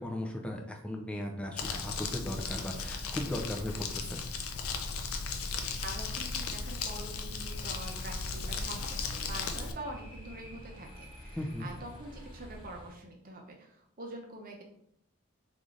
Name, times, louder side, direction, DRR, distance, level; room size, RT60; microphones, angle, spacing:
voice 1, 0.0-4.2 11.4-11.7, left 1 dB, 5° left, 1 dB, 0.3 m, -37 dB
Crumpling crinkling, 1.6-9.7, left 4 dB, 75° left, 0.4 m, -36 dB
voice 2, 5.8-14.6, right 1 dB, 40° right, 1 dB, 0.7 m, -45 dB
sound 1, 7.4-12.9, equal, 20° left, 1.3 m, -49 dB
3.2 x 2.5 x 3.7 m, 0.74 s
head